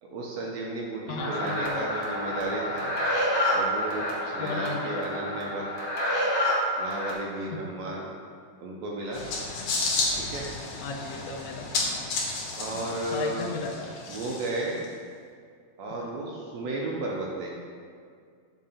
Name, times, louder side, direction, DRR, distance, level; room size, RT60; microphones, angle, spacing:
voice 1, 0.0-2.9 3.5-5.6 6.8-8.1 8.6-9.2 10.2-10.5 12.6-13.4 14.1-14.8 15.8-17.6, right 2 dB, 80° right, -2 dB, 1.6 m, -33 dB
voice 2, 1.1-1.9 4.4-5.2 10.8-11.7 12.7-12.8 13.1-13.9, left 4 dB, 85° left, 0 dB, 2.2 m, -35 dB
sound 1, 1.2-7.1, equal, 50° left, 1.6 m, -28 dB
sound 2, 9.1-14.8, left 3 dB, 65° left, 2.2 m, -32 dB
7.3 x 4.9 x 4.3 m, 2.1 s
omnidirectional pair, 3.8 m